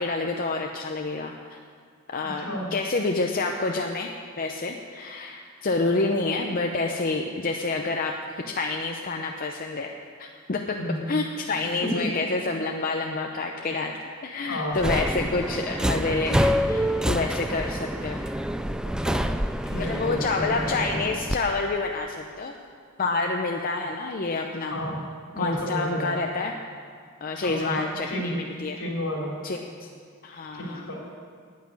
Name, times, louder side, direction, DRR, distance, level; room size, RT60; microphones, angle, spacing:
voice 1, 0.0-1.6 2.1-4.1 4.4-9.9 10.2-10.8 11.1-18.2 19.8-22.5 23.0-24.8 25.4-26.6 27.2-28.8 29.4-29.9 30.2-30.9, left 3 dB, 45° left, 2 dB, 0.7 m, -28 dB
voice 2, 2.2-2.7 6.2-6.3 10.7-11.1 11.8-12.0 14.4-15.0 19.0-19.2 19.6-21.0 24.7-25.0 25.3-26.1 27.4-28.3 28.8-29.3 30.5-31.0, left 1 dB, 75° left, -2 dB, 3.3 m, -31 dB
Subway metro underground, 14.7-21.4, equal, 5° right, 0.3 m, -27 dB
9.5 x 8.4 x 9.8 m, 2.1 s
head